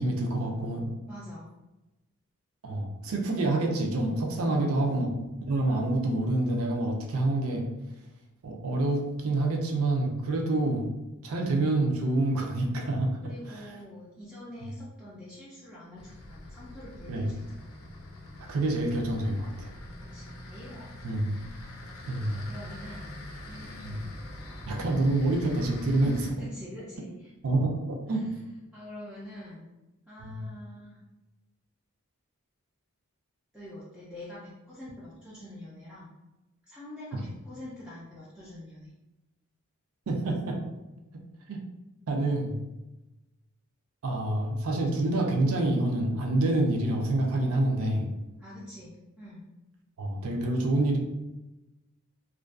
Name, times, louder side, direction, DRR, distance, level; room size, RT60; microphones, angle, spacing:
voice 1, 0.0-0.9 2.6-5.1 5.4-7.6 8.4-10.9 11.2-13.1 13.5-13.7 17.1-17.3 18.5-19.7 21.0-21.3 22.1-22.4 23.8-24.0 24.7-26.4 27.4-28.3 30.2-30.4 37.1-37.2 40.1-40.6 41.1-41.2 41.5-41.6 42.1-42.5 44.0-48.1 50.0-51.0, right 2 dB, 75° right, 1 dB, 0.5 m, -27 dB
voice 2, 1.1-1.5 4.4-5.2 13.2-17.7 20.1-21.2 22.3-23.2 23.5-24.1 26.4-27.3 28.7-29.7 30.1-31.0 33.5-36.1 36.7-38.9 48.4-49.4, left 1 dB, 5° right, -8 dB, 0.3 m, -45 dB
sound 1, 16.0-26.3, left 1 dB, 75° left, 0.5 m, -44 dB
2.4 x 2.2 x 2.3 m, 1.0 s
head